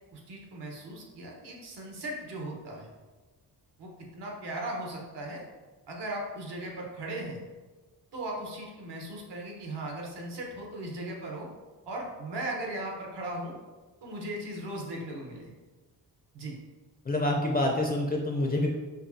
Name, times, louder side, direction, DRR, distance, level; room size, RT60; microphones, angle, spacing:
voice 1, 0.1-2.9 3.8-5.4 5.9-7.4 8.1-11.5 11.9-13.6 14.0-15.5 16.3-16.5, right 1 dB, 70° right, 0 dB, 1.0 m, -37 dB
voice 2, 17.0-18.7, left 1 dB, 20° left, 0 dB, 0.4 m, -27 dB
5.2 x 2.3 x 2.6 m, 1.3 s
cardioid pair, 70°, 42 cm